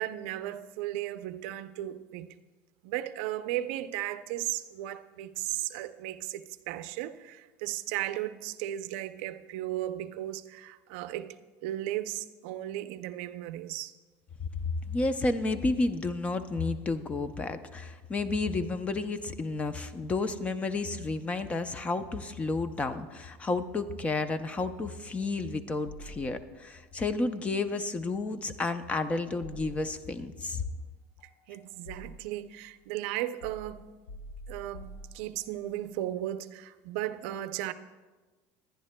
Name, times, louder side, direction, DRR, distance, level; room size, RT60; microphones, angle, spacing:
voice 1, 0.0-2.3 2.8-11.4 11.6-13.9 31.5-33.8 34.5-34.9 35.1-37.7, right 14 dB, 75° right, 0.5 m, -35 dB
voice 2, 14.9-30.6, left 3 dB, 20° left, 0.5 m, -31 dB
sound 1, 25.9-26.7 29.4-30.3 31.2-32.5 33.4-35.6, equal, 75° left, 0.9 m, -47 dB
21.5 x 10.5 x 2.2 m
cardioid pair, 140°, 7 cm